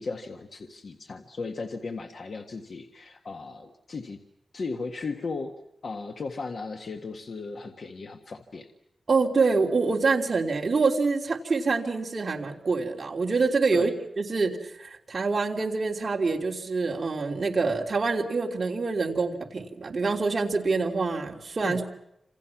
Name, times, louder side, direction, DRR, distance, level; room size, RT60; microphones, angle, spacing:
voice 1, 0.0-4.2 4.5-5.5 5.8-8.7 13.7-13.9 21.6-21.8, left 4 dB, 55° left, 4 dB, 1.7 m, -36 dB
voice 2, 9.1-13.9 14.2-22.0, right 4 dB, 40° right, 1 dB, 3.2 m, -26 dB
29.5 x 27.5 x 6.1 m, 0.81 s
wide cardioid pair, 150°, 0 cm